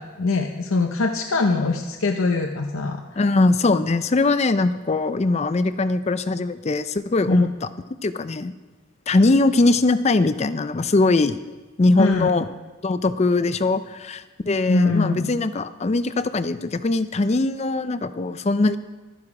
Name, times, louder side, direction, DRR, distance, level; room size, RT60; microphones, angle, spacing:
voice 1, 0.0-3.0 7.3-7.5 12.0-12.3 14.7-15.3, left 3 dB, 70° left, 4 dB, 0.7 m, -22 dB
voice 2, 3.2-7.5 8.0-8.5 9.1-11.4 11.8-12.5 12.8-18.8, left 2 dB, 30° left, 13 dB, 0.4 m, -21 dB
12.5 x 11.0 x 4.9 m, 1.2 s
head